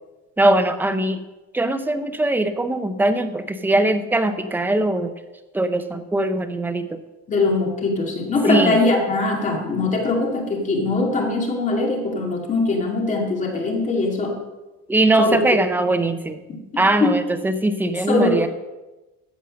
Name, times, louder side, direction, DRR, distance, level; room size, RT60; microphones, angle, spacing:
voice 1, 0.4-1.2 1.5-5.1 5.5-7.0 8.5-8.8 14.9-16.4 16.8-18.5, right 2 dB, 5° right, 8 dB, 0.6 m, -21 dB
voice 2, 7.3-14.4 15.2-15.4 16.5-17.2 18.1-18.5, left 3 dB, 25° left, 1 dB, 2.2 m, -21 dB
14.0 x 5.4 x 6.4 m, 1.1 s
cardioid pair, 155°, 30 cm